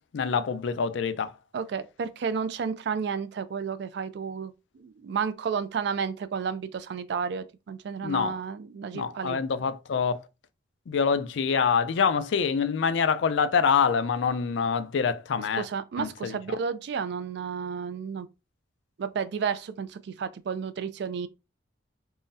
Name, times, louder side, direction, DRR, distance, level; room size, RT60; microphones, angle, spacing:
voice 1, 0.1-1.3 8.0-8.4 8.9-10.2 10.9-15.7 16.0-16.4, left 6 dB, 70° left, 0.4 m, -25 dB
voice 2, 1.5-9.4 15.6-18.3 19.0-21.3, right 6 dB, 60° right, 0.3 m, -32 dB
3.7 x 2.0 x 2.6 m
head